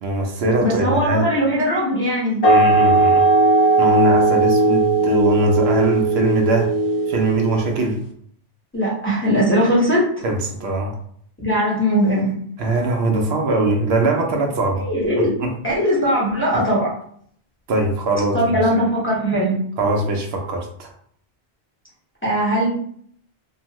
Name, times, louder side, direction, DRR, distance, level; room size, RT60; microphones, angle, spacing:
voice 1, 0.0-1.3 2.4-3.3 3.8-6.7 7.1-8.0 10.2-11.0 12.6-14.9 15.4-15.5 16.5-16.6 17.7-18.6 19.8-20.9, right 2 dB, 75° right, 2 dB, 0.8 m, -21 dB
voice 2, 0.6-2.4 8.7-10.0 11.4-12.4 14.8-15.3 15.6-16.9 18.3-19.6 22.2-22.7, equal, 10° left, -7 dB, 1.1 m, -19 dB
sound 1, 2.4-7.9, right 2 dB, 55° left, 0.4 m, -17 dB
2.7 x 2.3 x 2.9 m, 0.62 s
omnidirectional pair, 1.1 m